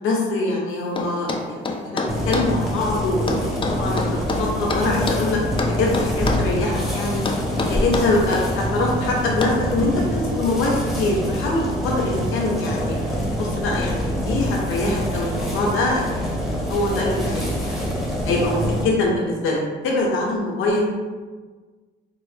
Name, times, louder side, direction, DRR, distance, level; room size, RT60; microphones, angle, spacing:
voice 1, 0.0-5.4 5.8-7.2 7.7-12.9 13.3-17.9 18.3-20.8, left 2 dB, 85° left, -2 dB, 0.9 m, -24 dB
sound 1, 1.0-2.5 3.3-5.3 5.6-6.5 7.2-8.5 9.4-9.6, left 3 dB, 25° left, 0.4 m, -26 dB
sound 2, 2.1-18.8, equal, ahead, 1.0 m, -25 dB
4.4 x 2.0 x 3.3 m, 1.4 s
cardioid pair, 90°, 20 cm